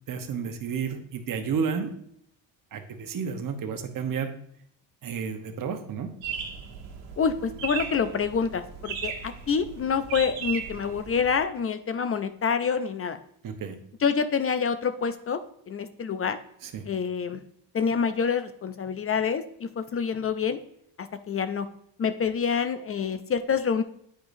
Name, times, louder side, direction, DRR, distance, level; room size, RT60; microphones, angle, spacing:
voice 1, 0.1-1.9 2.7-4.3 5.0-6.1 13.4-13.8 16.6-16.8, right 6 dB, 45° right, 5 dB, 1.0 m, -31 dB
sound 1, 6.2-11.4, right 6 dB, 85° right, 1.4 m, -37 dB
voice 2, 7.2-13.2 14.0-15.4 15.7-16.4 16.9-17.4 17.7-20.6 21.0-21.7 22.0-23.8, left 6 dB, 35° left, 11 dB, 0.4 m, -27 dB
9.0 x 4.9 x 2.6 m, 0.71 s
cardioid pair, 85°, 45 cm